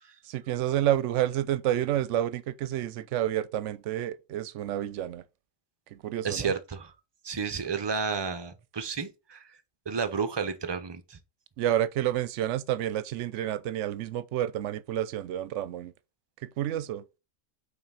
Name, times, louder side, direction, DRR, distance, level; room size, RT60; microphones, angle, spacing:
voice 1, 0.2-5.2 5.9-6.5 11.6-15.9 16.6-17.0, right 12 dB, 70° right, 0.9 m, -29 dB
voice 2, 6.2-6.9 7.2-9.4 9.9-11.2, right 5 dB, 30° right, 0.6 m, -31 dB
5.7 x 4.0 x 5.5 m
omnidirectional pair, 1.3 m